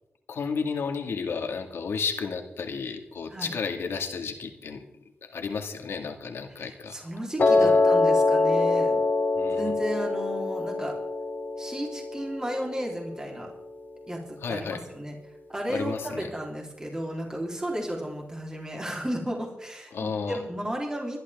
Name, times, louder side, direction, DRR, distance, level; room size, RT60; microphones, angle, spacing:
voice 1, 0.3-7.0 7.6-7.8 9.3-9.7 14.4-14.8 15.7-16.3 19.9-20.4, left 5 dB, 80° left, 5 dB, 1.9 m, -32 dB
voice 2, 6.6-9.0 9.5-10.9 11.6-13.5 14.1-15.2 15.5-21.2, equal, 15° right, 0 dB, 3.7 m, -33 dB
Piano, 7.4-13.5, left 3 dB, 50° left, 2.2 m, -24 dB
24.0 x 11.5 x 3.6 m, 0.89 s
wide cardioid pair, 90°, 4 cm